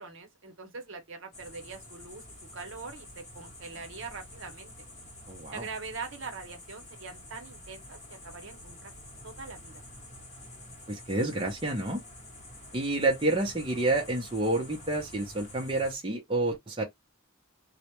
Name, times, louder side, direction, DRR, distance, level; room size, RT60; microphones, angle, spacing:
voice 1, 0.0-2.2 2.5-4.7 5.5-8.9 9.2-9.8, right 4 dB, 60° right, 0.7 m, -42 dB
sound 1, 1.3-16.0, left 1 dB, 30° left, 0.9 m, -48 dB
voice 2, 5.3-5.6 10.9-12.0 12.7-16.8, right 2 dB, 25° right, 0.5 m, -29 dB
2.2 x 2.0 x 2.8 m
head